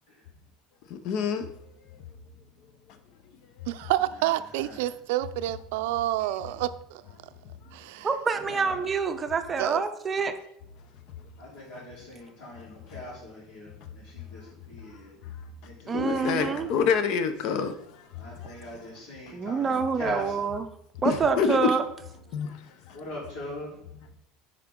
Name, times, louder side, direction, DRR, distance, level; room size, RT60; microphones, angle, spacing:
voice 1, 1.0-1.4 15.9-17.7 21.0-21.7 22.3-22.5, left 6 dB, 55° left, 0.7 m, -26 dB
voice 2, 3.7-7.0 7.7-8.1 9.6-9.8, right 15 dB, 80° right, 0.4 m, -28 dB
voice 3, 8.0-10.3 15.9-16.7 19.3-20.7 21.0-21.8, right 5 dB, 20° right, 0.6 m, -27 dB
voice 4, 11.4-13.7 14.0-14.4 14.7-15.1 15.6-16.7 18.2-19.7 20.0-20.4 22.9-23.7, left 1 dB, 70° left, 3.6 m, -41 dB
10.5 x 4.9 x 3.7 m
cardioid pair, 155°, 0 cm